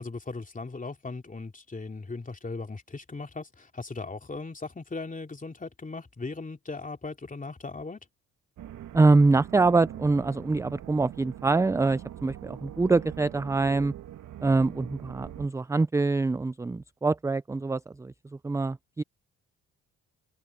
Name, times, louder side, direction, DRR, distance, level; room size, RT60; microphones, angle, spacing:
voice 1, 0.0-8.0, left 3 dB, 25° left, 2.8 m, -38 dB
sound 1, 8.6-15.5, right 11 dB, 65° right, 2.3 m, -43 dB
voice 2, 8.9-13.9 14.4-18.1 18.4-19.0, right 3 dB, 10° right, 0.4 m, -24 dB
supercardioid pair, 55°, 33 cm